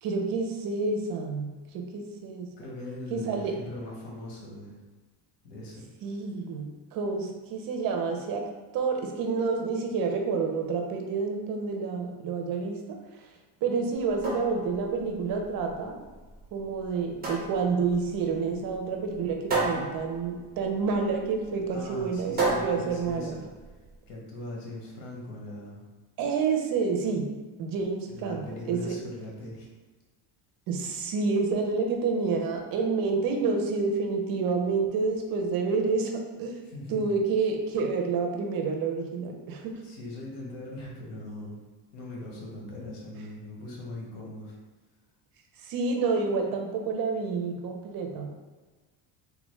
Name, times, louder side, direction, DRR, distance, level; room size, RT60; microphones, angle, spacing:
voice 1, 0.0-2.5 3.1-3.5 6.0-8.4 8.7-13.0 13.6-16.0 16.5-23.4 26.2-27.3 27.6-29.0 30.7-36.1 36.4-36.5 36.9-39.7 45.6-48.3, right 4 dB, 55° right, 3 dB, 0.6 m, -29 dB
voice 2, 2.5-4.7 5.4-5.8 19.5-19.9 21.7-23.4 24.1-25.8 28.1-29.7 36.7-37.1 39.8-41.6 41.9-44.6, left 1 dB, 80° left, -2 dB, 1.2 m, -40 dB
sound 1, 13.9-23.9, right 2 dB, 20° right, 0.8 m, -34 dB
3.6 x 2.4 x 3.1 m, 1.3 s
cardioid pair, 145°, 42 cm